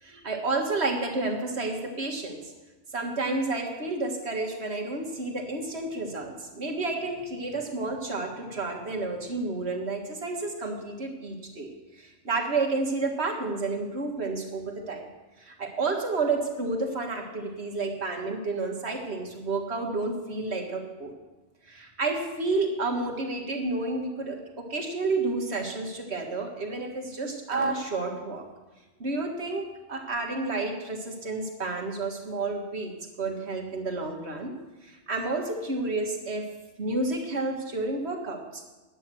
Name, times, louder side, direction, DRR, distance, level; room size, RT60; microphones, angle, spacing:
voice 1, 0.0-2.4 2.9-11.7 12.0-15.0 15.4-21.1 21.7-28.4 29.0-34.6 34.8-36.5 36.8-38.6, right 3 dB, 60° right, 1 dB, 1.9 m, -30 dB
10.0 x 9.2 x 7.5 m, 1.2 s
omnidirectional pair, 1.2 m